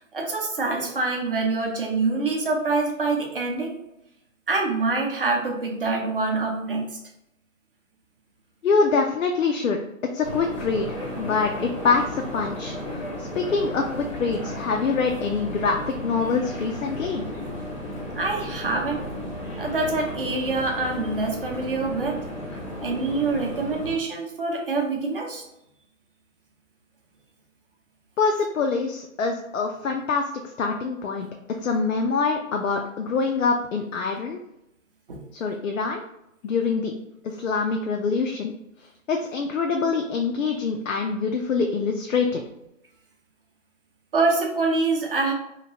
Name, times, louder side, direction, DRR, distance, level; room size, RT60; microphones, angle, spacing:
voice 1, 0.1-3.7 4.5-6.8 18.1-19.0 19.6-22.2 22.8-25.4 35.1-35.2 44.1-45.3, right 3 dB, 45° right, 1 dB, 0.6 m, -25 dB
voice 2, 8.6-9.8 10.1-17.2 28.2-30.3 30.6-31.3 31.6-34.4 35.3-36.0 36.4-36.9 37.2-38.5 39.1-42.4, left 4 dB, 70° left, 2 dB, 0.5 m, -25 dB
sound 1, 10.2-24.0, left 1 dB, 25° left, 0.6 m, -34 dB
2.9 x 2.7 x 2.8 m, 0.84 s
hypercardioid pair, 160°, 40 cm